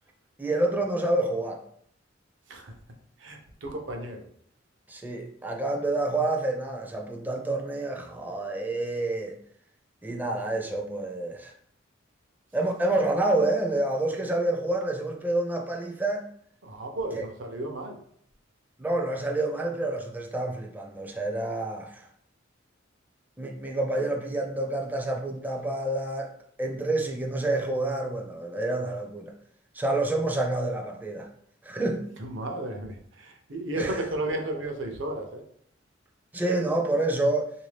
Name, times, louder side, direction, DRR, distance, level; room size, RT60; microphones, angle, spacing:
voice 1, 0.4-1.6 4.9-9.4 10.0-11.5 12.5-16.2 17.1-17.2 18.8-22.1 23.4-26.3 26.6-29.3 29.7-31.3 31.6-32.0 33.8-34.0 36.3-37.5, right 2 dB, 10° right, 0.4 m, -28 dB
voice 2, 3.2-4.2 16.6-18.0 32.2-35.4, right 1 dB, 70° right, 0.7 m, -34 dB
3.4 x 2.6 x 3.3 m
head